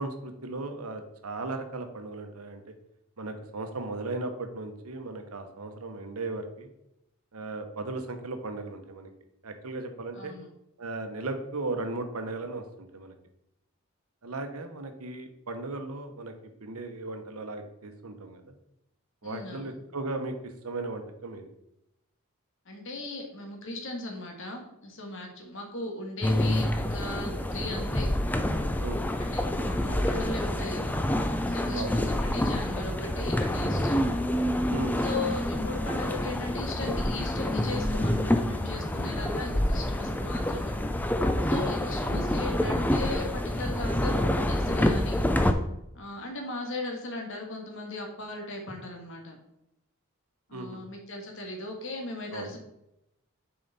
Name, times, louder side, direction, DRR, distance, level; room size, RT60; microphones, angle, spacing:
voice 1, 0.0-2.6 3.2-6.7 7.3-9.1 9.4-10.3 10.8-12.6 12.9-13.1 14.2-16.3 16.6-18.4 19.2-20.3 20.6-21.5 28.8-29.0 31.7-31.9 34.7-35.1 50.5-50.8 52.3-52.5, right 2 dB, 80° right, 7 dB, 1.0 m, -36 dB
voice 2, 10.1-10.5 19.2-19.8 22.6-28.1 28.9-31.0 31.5-34.0 35.0-40.8 41.4-45.2 45.9-49.4 50.5-52.6, left 2 dB, 60° left, 2 dB, 1.5 m, -37 dB
sound 1, 26.2-45.5, left 1 dB, 10° left, 0.4 m, -27 dB
6.8 x 4.9 x 4.1 m, 0.84 s
head